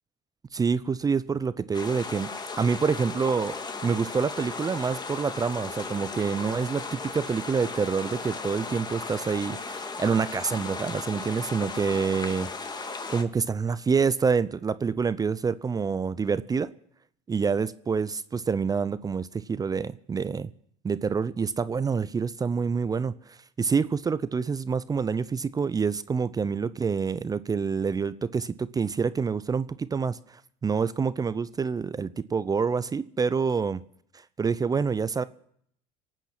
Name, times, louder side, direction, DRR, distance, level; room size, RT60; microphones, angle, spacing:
voice 1, 0.5-2.3 2.6-12.5 13.1-16.7 17.3-20.5 20.8-33.8 34.4-35.2, right 5 dB, 25° right, 16 dB, 0.6 m, -27 dB
sound 1, 1.7-13.2, left 4 dB, 25° left, 1.9 m, -36 dB
25.0 x 9.1 x 6.0 m, 0.67 s
hypercardioid pair, 80°, 16 cm